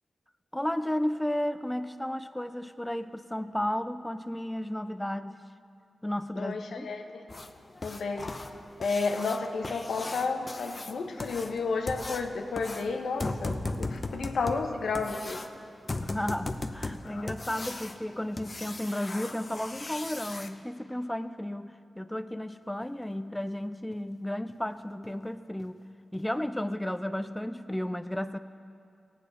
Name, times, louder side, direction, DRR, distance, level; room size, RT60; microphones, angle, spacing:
voice 1, 0.5-5.4 6.0-6.9 16.0-25.8 26.1-28.4, left 1 dB, 10° left, 10 dB, 0.4 m, -33 dB
voice 2, 6.4-7.2 7.8-8.3 8.8-15.4 17.0-17.3, left 4 dB, 85° left, 4 dB, 0.9 m, -32 dB
sound 1, 7.3-20.5 22.8-22.9 23.3-23.4 23.9-24.0 24.5-24.6 25.0-25.2 25.6-25.7 26.1-26.2, left 2 dB, 35° left, 0.7 m, -38 dB
18.0 x 8.4 x 4.1 m, 2.4 s
cardioid pair, 70°, 0 cm